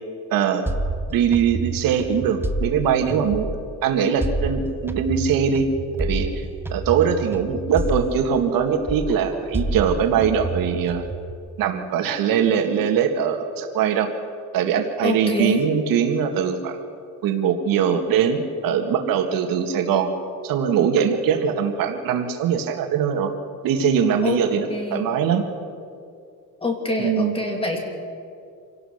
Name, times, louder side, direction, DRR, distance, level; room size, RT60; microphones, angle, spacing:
voice 1, 0.3-0.7 1.1-5.7 6.0-6.4 6.7-11.0 11.6-14.1 14.5-16.8 17.2-20.1 20.4-23.3 23.6-25.4 27.0-27.4, right 7 dB, 75° right, 5 dB, 2.0 m, -22 dB
sound 1, 0.7-3.8 4.2-8.6 8.9-11.3, right 2 dB, 5° right, 0.8 m, -29 dB
voice 2, 15.0-15.6 24.2-24.4 24.7-25.1 26.6-27.8, left 2 dB, 15° left, 2 dB, 2.8 m, -25 dB
26.5 x 17.5 x 6.6 m, 2.4 s
cardioid pair, 165°, 34 cm